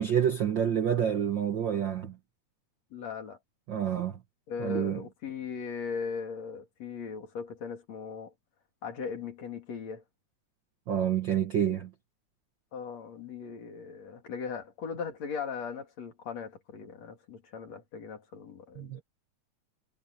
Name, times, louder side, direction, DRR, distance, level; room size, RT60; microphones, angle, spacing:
voice 1, 0.0-2.2 3.7-4.2 4.6-5.0 10.9-11.9 18.8-19.0, right 9 dB, 60° right, 1.2 m, -28 dB
voice 2, 2.9-3.4 4.5-8.3 8.8-10.0 12.7-19.0, left 6 dB, 60° left, 3.9 m, -38 dB
omnidirectional pair, 3.5 m